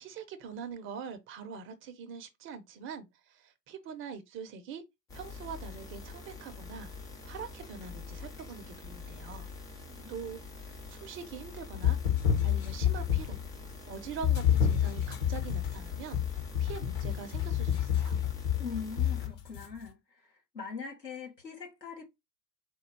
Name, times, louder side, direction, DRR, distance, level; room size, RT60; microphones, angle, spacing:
voice 1, 0.0-4.8 5.1-6.9 7.3-9.5 10.1-12.0 12.4-13.4 13.9-18.2, right 6 dB, 25° right, 0.6 m, -43 dB
sound 1, 5.1-19.3, left 4 dB, 10° left, 0.3 m, -45 dB
sound 2, 11.7-13.5 14.2-19.7, left 9 dB, 50° left, 1.1 m, -29 dB
voice 2, 18.6-20.0 20.5-22.0, left 5 dB, 90° left, 1.6 m, -41 dB
4.3 x 2.3 x 4.5 m
figure-of-eight pair, 85°, 49 cm